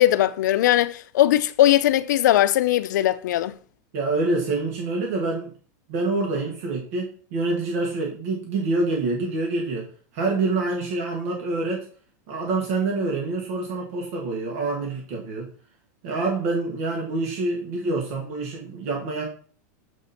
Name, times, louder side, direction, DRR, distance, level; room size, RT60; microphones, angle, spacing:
voice 1, 0.0-3.6, left 13 dB, 80° left, 0.5 m, -19 dB
voice 2, 3.9-5.5 5.9-9.9 10.1-11.9 12.3-15.5 16.0-19.2, right 3 dB, 55° right, 1.7 m, -26 dB
7.4 x 4.1 x 4.3 m
supercardioid pair, 160°, 10 cm